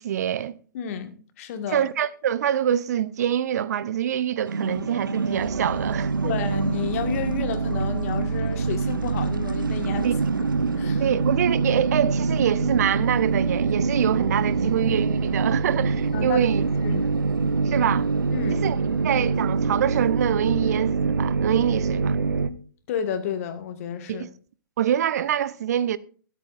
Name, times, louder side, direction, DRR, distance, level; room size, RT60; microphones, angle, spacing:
voice 1, 0.0-0.5 1.7-6.3 10.0-10.1 11.0-16.7 17.6-18.1 18.5-18.8 19.0-22.2 24.1-24.3 24.8-26.0, right 10 dB, 50° right, 0.6 m, -25 dB
voice 2, 0.7-1.8 6.2-10.5 10.8-11.0 16.1-16.5 16.8-17.1 18.3-18.7 22.9-24.3, left 8 dB, 45° left, 1.7 m, -31 dB
sound 1, 4.5-22.5, right 4 dB, 80° right, 0.9 m, -25 dB
23.5 x 8.5 x 2.5 m
figure-of-eight pair, 120°, 11 cm